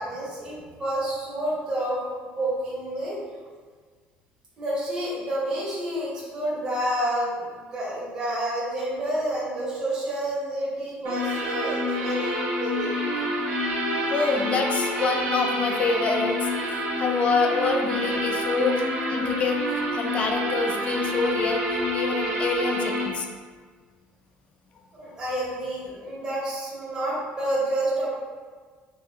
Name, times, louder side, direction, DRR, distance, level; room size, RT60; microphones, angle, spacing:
voice 1, 0.0-2.0 2.4-3.2 4.6-12.9 25.0-28.1, right 1 dB, 25° right, -8 dB, 1.2 m, -29 dB
sound 1, 11.0-23.0, left 1 dB, 55° right, 0.9 m, -27 dB
voice 2, 14.1-18.8 19.1-19.6 19.9-21.6 21.9-23.3, left 4 dB, 35° left, 3 dB, 0.3 m, -26 dB
3.6 x 3.3 x 2.2 m, 1.5 s
cardioid pair, 160°, 4 cm